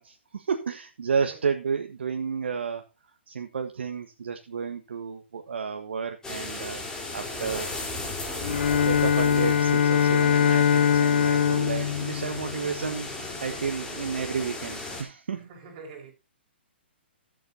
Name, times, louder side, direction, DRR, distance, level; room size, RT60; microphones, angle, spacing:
voice 1, 0.0-2.8 3.3-6.8 7.1-7.7 8.8-15.5, right 6 dB, 70° right, 1.4 m, -31 dB
sound 1, 6.2-15.0, left 2 dB, 10° left, 4.1 m, -36 dB
Bowed string instrument, 8.4-13.0, left 8 dB, 60° left, 1.4 m, -23 dB
voice 2, 15.3-16.1, right 4 dB, 40° right, 5.4 m, -45 dB
21.0 x 7.7 x 2.8 m
figure-of-eight pair, 130°, 6 cm